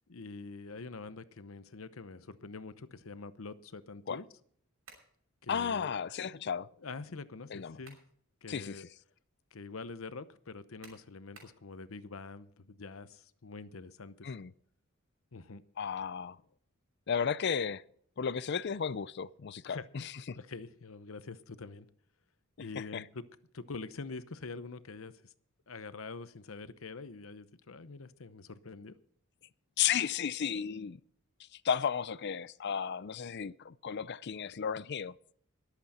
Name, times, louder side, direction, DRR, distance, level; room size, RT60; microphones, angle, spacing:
voice 1, 0.1-4.3 5.4-5.9 6.8-8.0 8.4-8.9 9.5-14.3 15.3-15.6 19.7-19.8 20.4-21.9 22.6-23.2 23.5-25.3 25.7-28.9, left 3 dB, 75° left, 0.9 m, -45 dB
sound 1, 4.8-5.2 7.5-8.1 8.6-8.7 10.8-11.6, right 4 dB, 80° right, 6.1 m, -56 dB
voice 2, 5.5-6.7 7.5-7.8 8.5-8.9 14.2-14.5 15.8-16.4 17.1-17.8 18.2-20.4 22.7-23.0 29.8-31.0 31.6-35.1, left 7 dB, 55° left, 0.5 m, -34 dB
22.0 x 8.2 x 4.3 m
head